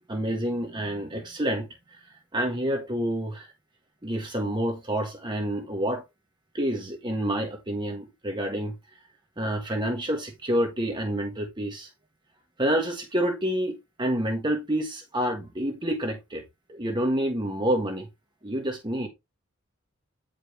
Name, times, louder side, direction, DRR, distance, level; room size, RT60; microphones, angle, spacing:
voice 1, 0.1-2.0 2.3-3.5 4.0-6.0 6.5-8.8 9.4-11.9 12.6-16.4 16.7-18.1 18.4-19.1, equal, 25° right, 1.4 m, -28 dB
9.6 x 5.1 x 3.1 m
head